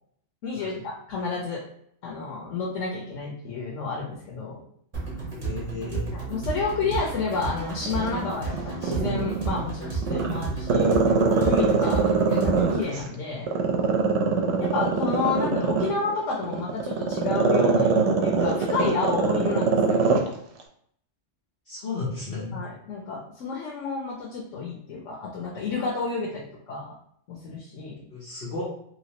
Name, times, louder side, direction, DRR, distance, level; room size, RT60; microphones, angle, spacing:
voice 1, 0.4-1.6 2.0-4.6 6.1-10.9 11.3-13.5 14.6-20.0 22.5-26.9 27.3-28.0, left 4 dB, 85° left, -3 dB, 1.0 m, -30 dB
sound 1, 4.9-12.9, right 3 dB, 30° right, 1.1 m, -33 dB
voice 2, 5.3-6.1 21.6-22.6 28.1-28.7, left 3 dB, 55° left, -7 dB, 1.0 m, -33 dB
Growling, 7.9-9.6 10.0-13.0 13.5-20.3 20.6-20.7, right 5 dB, 75° right, 0.9 m, -22 dB
3.1 x 3.0 x 2.8 m, 0.69 s
omnidirectional pair, 1.3 m